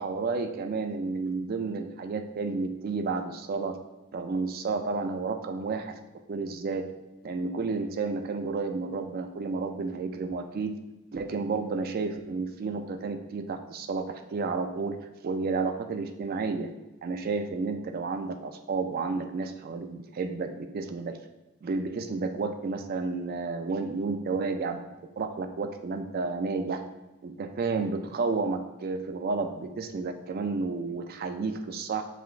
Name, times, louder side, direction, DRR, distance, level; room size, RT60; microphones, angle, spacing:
voice 1, 0.0-3.8 4.1-5.9 6.3-6.9 7.2-10.8 11.1-15.0 15.2-16.7 17.0-21.2 21.6-24.8 25.2-26.8 27.2-32.0, right 4 dB, 45° right, 7 dB, 0.3 m, -31 dB
5.8 x 3.4 x 2.4 m, 1.0 s
head